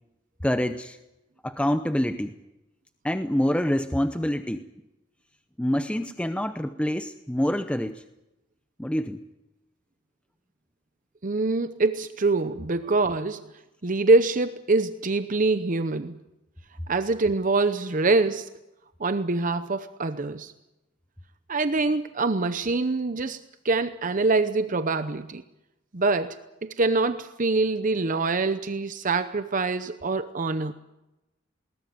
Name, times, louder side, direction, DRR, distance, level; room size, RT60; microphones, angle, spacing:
voice 1, 0.4-1.0 1.4-2.3 3.0-4.7 5.6-8.0 8.8-9.2, equal, 5° left, 9 dB, 0.7 m, -26 dB
voice 2, 11.2-13.4 13.8-16.2 16.9-18.5 19.0-20.5 21.5-25.4 25.9-30.7, right 3 dB, 45° right, 11 dB, 0.8 m, -25 dB
21.0 x 19.5 x 9.4 m, 0.96 s
head